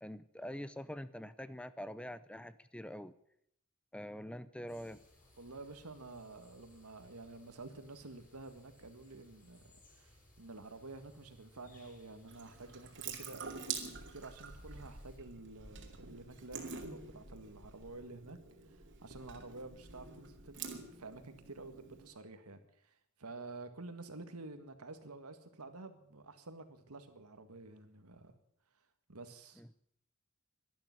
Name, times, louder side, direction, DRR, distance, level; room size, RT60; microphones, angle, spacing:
voice 1, 0.0-3.1 3.9-5.0 29.6-29.7, equal, 5° left, 15 dB, 0.5 m, -45 dB
sound 1, 4.7-15.2, equal, 40° left, 6.6 m, -63 dB
voice 2, 5.4-28.3 29.1-29.6, right 3 dB, 85° right, 8 dB, 1.9 m, -50 dB
Water tap faucet / Sink (filling or washing) / Drip, 12.3-22.1, right 5 dB, 60° right, 2.5 m, -47 dB
12.5 x 12.0 x 9.7 m, 0.72 s
head